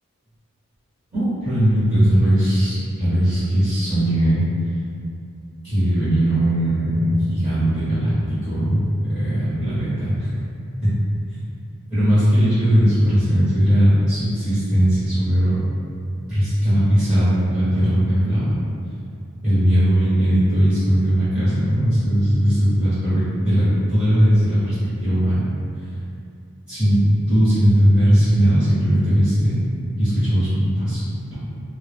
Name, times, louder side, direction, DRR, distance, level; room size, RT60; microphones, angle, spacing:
voice 1, 1.1-4.4 5.6-8.8 9.1-10.3 10.8-10.9 11.9-15.6 16.3-18.6 19.4-25.4 26.7-29.7 30.0-31.3, equal, 15° right, -15 dB, 0.8 m, -18 dB
2.2 x 2.0 x 3.1 m, 2.5 s
head